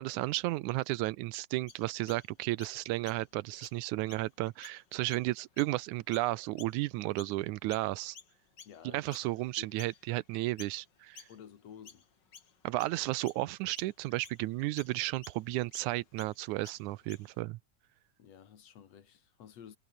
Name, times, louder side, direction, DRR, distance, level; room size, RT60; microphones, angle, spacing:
voice 1, 0.0-8.2 8.8-11.2 12.6-17.6, right 18 dB, 85° right, 2.1 m, -33 dB
Chirp tweet, 1.7-7.4 7.7-17.4, left 6 dB, 40° left, 2.3 m, -55 dB
voice 2, 8.6-9.3 9.6-9.8 11.3-12.1 18.2-19.8, left 8 dB, 60° left, 2.8 m, -52 dB
omnidirectional pair, 3.4 m